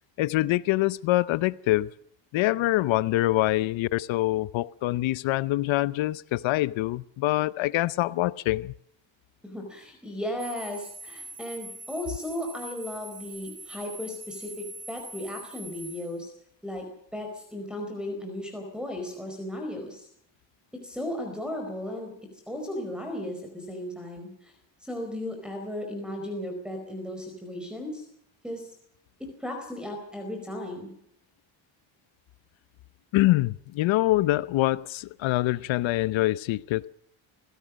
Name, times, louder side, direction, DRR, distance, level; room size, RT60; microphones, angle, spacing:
voice 1, 0.2-1.9 2.3-8.7 33.1-36.9, left 17 dB, 80° left, 0.8 m, -25 dB
voice 2, 9.4-16.3 16.6-16.8 17.1-20.1 20.7-22.1 22.5-24.5 24.8-28.0 28.4-28.7 29.2-30.9, left 1 dB, ahead, 4.7 m, -35 dB
sound 1, 10.4-16.2, right 2 dB, 25° right, 5.3 m, -43 dB
25.0 x 16.5 x 6.4 m
cardioid pair, 115°, 46 cm